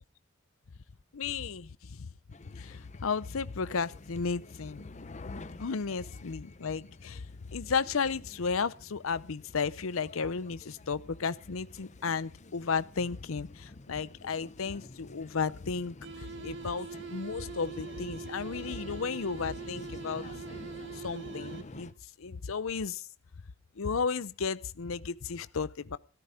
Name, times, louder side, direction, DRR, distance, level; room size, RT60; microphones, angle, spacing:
voice 1, 1.1-1.7 2.0-2.1 2.5-4.8 5.6-7.2 7.5-20.2 20.9-21.9 22.2-23.0 23.8-26.0, left 5 dB, 85° left, 0.7 m, -34 dB
sound 1, 2.3-21.9, left 2 dB, 35° left, 0.8 m, -50 dB
sound 2, 16.0-22.0, right 6 dB, 60° right, 1.6 m, -43 dB
16.0 x 14.0 x 5.0 m
head